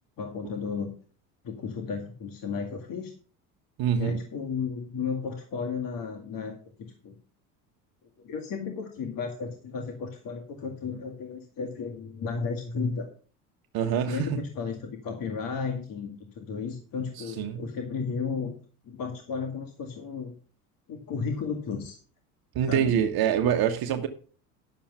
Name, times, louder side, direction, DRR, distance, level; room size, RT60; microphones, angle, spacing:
voice 1, 0.2-0.9 1.4-3.1 3.9-7.2 8.2-13.1 14.1-18.5 18.9-20.3 20.9-22.0 22.7-23.0, left 5 dB, 50° left, 2.1 m, -34 dB
voice 2, 3.8-4.2 13.7-14.4 17.4-17.6 22.5-24.1, right 9 dB, 55° right, 1.3 m, -25 dB
11.0 x 7.2 x 5.6 m
hypercardioid pair, 75°, 45 cm